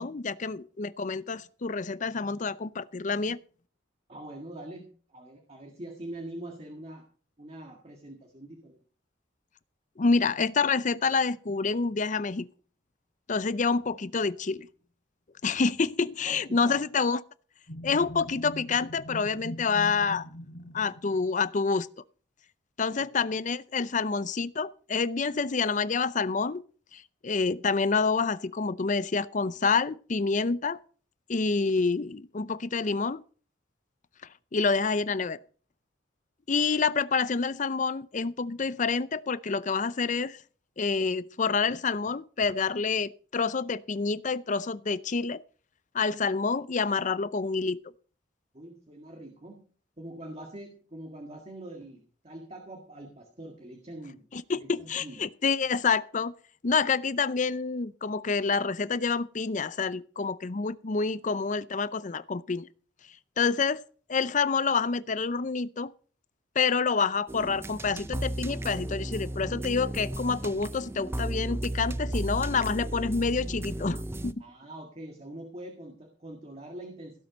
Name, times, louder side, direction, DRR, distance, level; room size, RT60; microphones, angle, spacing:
voice 1, 0.0-3.4 10.0-12.5 13.3-14.7 15.4-17.2 17.8-20.3 20.7-21.9 22.8-26.6 26.9-30.8 31.3-33.2 34.5-35.4 36.5-40.4 40.8-45.4 45.9-47.8 54.3-56.3 56.6-62.7 63.4-63.8 64.1-65.9 66.6-74.4, left 4 dB, 40° left, 0.5 m, -28 dB
voice 2, 4.1-7.0 7.4-8.8 16.2-16.8 23.0-23.1 48.5-49.7 50.0-55.2 74.4-77.2, right 1 dB, 35° right, 1.8 m, -44 dB
sound 1, 17.7-21.6, equal, 70° left, 3.3 m, -42 dB
sound 2, 67.3-74.3, right 1 dB, 15° right, 0.5 m, -34 dB
16.5 x 7.6 x 5.3 m
head